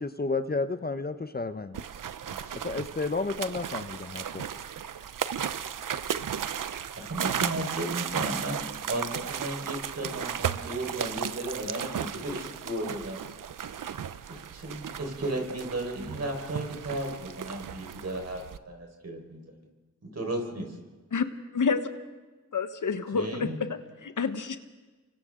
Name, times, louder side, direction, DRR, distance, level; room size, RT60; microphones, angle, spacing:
voice 1, 0.0-1.8 2.6-4.5, left 3 dB, 30° left, 9 dB, 0.9 m, -31 dB
sound 1, 1.7-18.6, right 8 dB, 75° right, 0.8 m, -35 dB
voice 2, 2.2-2.6 6.6-13.2 14.3-19.6 20.0-20.7 23.1-23.6, right 1 dB, 50° right, 3 dB, 4.9 m, -35 dB
voice 3, 21.5-21.9 22.5-24.6, left 5 dB, 70° left, 9 dB, 1.3 m, -29 dB
29.5 x 24.5 x 3.8 m, 1.2 s
cardioid pair, 55°, 32 cm